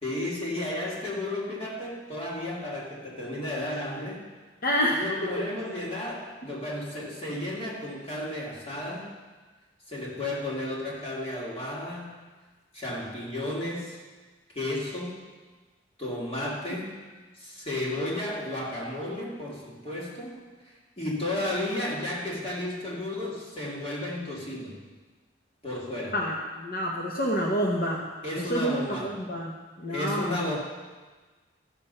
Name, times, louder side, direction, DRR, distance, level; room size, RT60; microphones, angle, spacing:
voice 1, 0.0-4.2 4.9-9.1 9.9-12.2 12.7-14.0 14.5-15.2 16.0-17.0 17.4-20.4 20.6-24.8 25.6-26.2 28.2-29.1 29.9-30.6, left 1 dB, 30° left, -4 dB, 2.5 m, -33 dB
voice 2, 4.6-5.5 26.1-28.1 28.4-29.5 29.8-30.4, equal, 45° left, -3 dB, 1.0 m, -28 dB
14.5 x 6.9 x 5.5 m, 1.3 s
head